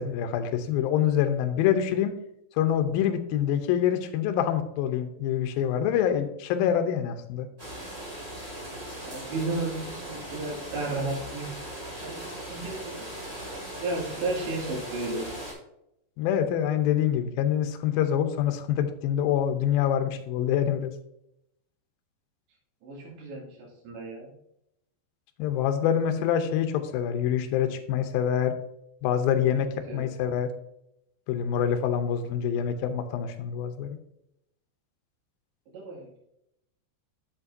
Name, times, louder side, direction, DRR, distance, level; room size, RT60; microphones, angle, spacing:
voice 1, 0.0-2.2 2.6-7.5 16.2-20.9 25.4-28.5 29.0-30.5 31.3-34.0, left 9 dB, 75° left, 6 dB, 2.2 m, -26 dB
sound 1, 7.6-15.5, right 1 dB, 20° right, 1.7 m, -39 dB
voice 2, 9.0-11.5 12.0-13.1 13.8-15.3 22.8-24.3 29.9-30.1 35.7-36.2, right 2 dB, 80° right, -2 dB, 4.7 m, -33 dB
8.5 x 7.8 x 2.7 m, 0.81 s
omnidirectional pair, 5.1 m